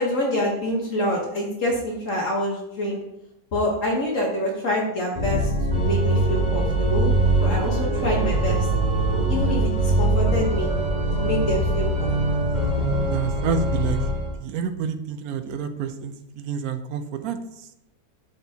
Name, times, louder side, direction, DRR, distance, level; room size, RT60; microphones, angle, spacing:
voice 1, 0.0-3.0 3.5-5.5 5.8-7.1 7.4-8.7 9.3-10.7 11.2-12.1, left 1 dB, 60° left, -2 dB, 1.4 m, -26 dB
Organ, 5.1-14.3, right 2 dB, 30° right, 1.5 m, -22 dB
voice 2, 13.1-14.0 14.4-17.4, right 7 dB, 75° right, 9 dB, 1.0 m, -28 dB
10.0 x 4.4 x 2.7 m, 0.85 s
omnidirectional pair, 1.6 m